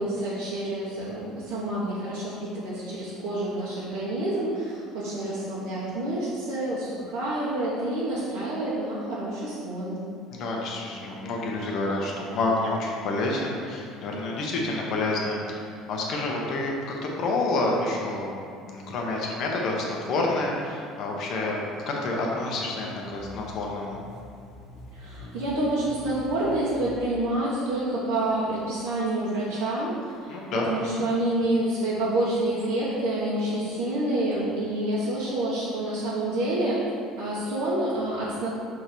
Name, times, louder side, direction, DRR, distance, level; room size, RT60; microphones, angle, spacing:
voice 1, 0.0-10.0 24.9-30.4 30.6-36.8 37.2-38.5, right 1 dB, 90° right, -8 dB, 1.3 m, -28 dB
voice 2, 10.3-16.7 17.0-18.3 18.7-24.0 30.3-31.1, left 2 dB, 40° left, -1 dB, 0.9 m, -28 dB
sound 1, 23.0-26.9, left 2 dB, 60° left, 1.2 m, -45 dB
6.7 x 3.6 x 4.5 m, 2.4 s
cardioid pair, 175°, 0 cm